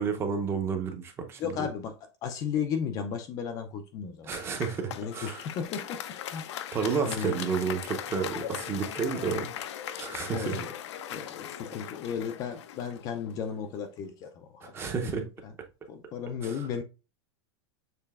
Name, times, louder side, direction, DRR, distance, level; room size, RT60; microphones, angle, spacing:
voice 1, 0.0-1.7 4.3-5.4 6.7-9.5 10.0-10.6 14.6-15.2, right 5 dB, 15° right, 0.6 m, -31 dB
voice 2, 1.4-4.3 5.0-6.0 6.3-6.5 7.1-7.4 9.3-9.5 10.3-10.7 11.1-15.5 15.9-16.8, left 7 dB, 25° left, 0.4 m, -35 dB
Applause, 4.3-13.7, left 10 dB, 80° left, 0.5 m, -39 dB
6.7 x 3.1 x 2.3 m
supercardioid pair, 160°, 15 cm